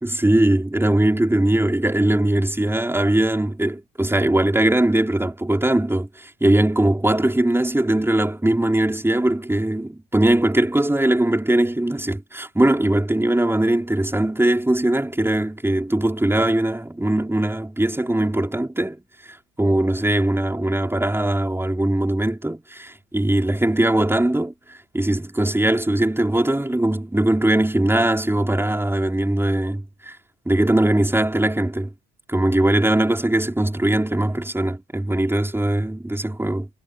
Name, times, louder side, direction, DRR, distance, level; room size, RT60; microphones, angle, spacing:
voice 1, 0.0-19.0 19.3-30.2 30.5-31.9 32.3-36.7, right 1 dB, 5° right, 3.6 m, -20 dB
hypercardioid pair, 65°, 32 cm